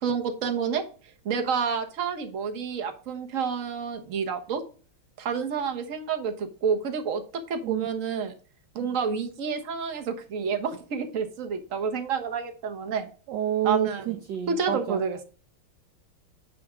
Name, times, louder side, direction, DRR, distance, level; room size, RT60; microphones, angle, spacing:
voice 1, 0.0-0.8 1.2-4.6 5.2-8.3 8.7-13.1 13.6-14.2 14.5-15.2, right 6 dB, 45° right, 6 dB, 1.4 m, -29 dB
voice 2, 13.3-15.0, right 10 dB, 65° right, 7 dB, 1.3 m, -29 dB
9.3 x 3.7 x 5.0 m, 0.40 s
omnidirectional pair, 2.2 m